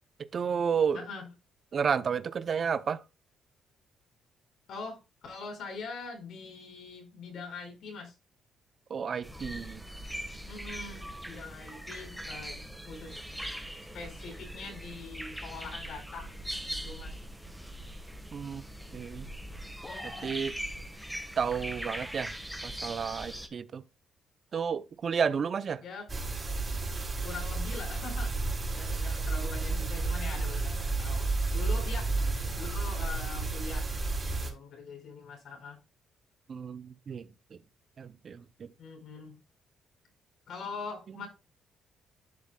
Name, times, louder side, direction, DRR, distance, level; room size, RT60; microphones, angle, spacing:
voice 1, 0.2-1.0 1.7-3.0 8.9-9.8 18.3-18.6 18.9-19.3 20.2-20.6 21.4-22.4 22.6-23.8 24.5-25.8 36.5-37.6 38.0-38.7, right 6 dB, 50° right, 0.6 m, -31 dB
voice 2, 4.7-8.1 10.4-12.6 12.8-13.2 13.8-16.3 16.7-17.2 19.8-20.3 25.8-26.1 27.2-28.4 28.7-32.2 32.5-33.9 34.3-35.8 38.8-39.4 40.5-41.3, left 4 dB, 75° left, 5.0 m, -43 dB
sound 1, 9.2-23.5, equal, 5° right, 1.4 m, -41 dB
sound 2, 19.8-20.4, left 3 dB, 30° left, 1.0 m, -45 dB
sound 3, 26.1-34.5, right 3 dB, 30° right, 3.8 m, -31 dB
11.0 x 7.5 x 2.3 m
cardioid pair, 90°, 0 cm